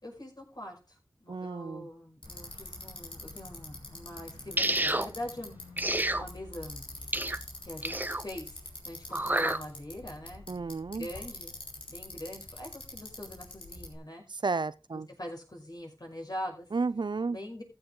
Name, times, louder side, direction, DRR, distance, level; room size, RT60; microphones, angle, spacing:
voice 1, 0.0-5.6 6.1-6.8 7.6-8.6 8.8-10.4 10.9-11.5 11.9-14.2 14.9-16.7 17.3-17.6, left 1 dB, 50° left, 5.5 m, -42 dB
voice 2, 1.3-1.9 10.5-11.1 14.4-15.1 16.7-17.4, right 4 dB, 60° right, 0.5 m, -32 dB
Bicycle, 2.2-14.0, left 2 dB, 85° left, 3.9 m, -45 dB
sound 1, 4.6-5.1 5.8-6.2 7.1-7.4 7.8-8.2 9.1-9.6, right 1 dB, 20° right, 0.7 m, -29 dB
15.0 x 7.8 x 3.8 m
wide cardioid pair, 45°, 9 cm